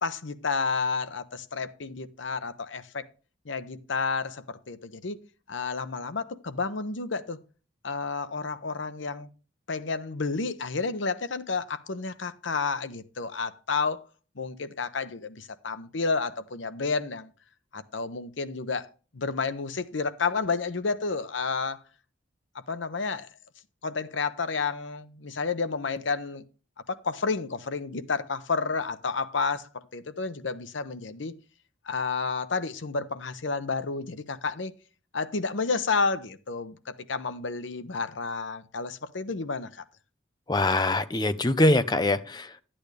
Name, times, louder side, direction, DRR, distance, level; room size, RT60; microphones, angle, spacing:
voice 1, 0.0-3.1 3.4-5.2 5.5-7.4 7.8-9.3 9.7-14.0 14.4-17.3 17.7-18.9 19.1-21.8 22.5-23.3 23.8-26.4 26.9-31.3 31.8-34.7 35.1-39.8, left 4 dB, 80° left, 0.9 m, -31 dB
voice 2, 40.5-42.6, left 2 dB, 20° left, 0.6 m, -23 dB
12.0 x 8.8 x 3.3 m
head